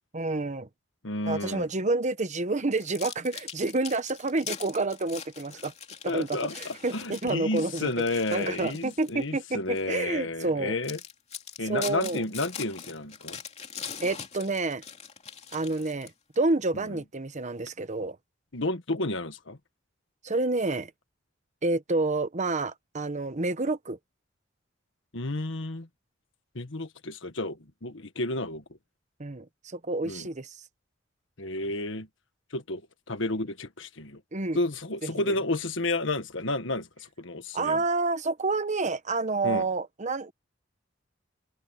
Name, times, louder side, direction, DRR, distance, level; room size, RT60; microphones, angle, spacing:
voice 1, 0.1-0.7 1.2-5.7 6.0-10.8 11.6-12.2 14.0-14.8 15.5-16.1 16.4-18.2 20.2-20.9 21.6-24.0 29.2-30.6 34.3-34.6 35.0-35.3 37.5-40.3, right 3 dB, 40° right, 1.1 m, -29 dB
voice 2, 1.0-1.7 6.0-11.0 11.6-13.4 16.9-17.0 18.5-19.6 25.1-25.9 26.5-28.6 30.0-30.3 31.4-32.1 32.5-32.8 33.1-34.2 34.5-37.8 39.4-39.6, left 2 dB, 70° left, 1.6 m, -31 dB
sound 1, 2.8-9.2 9.7-9.9 10.4-10.5 10.8-16.3, left 7 dB, 35° left, 2.8 m, -42 dB
open air
head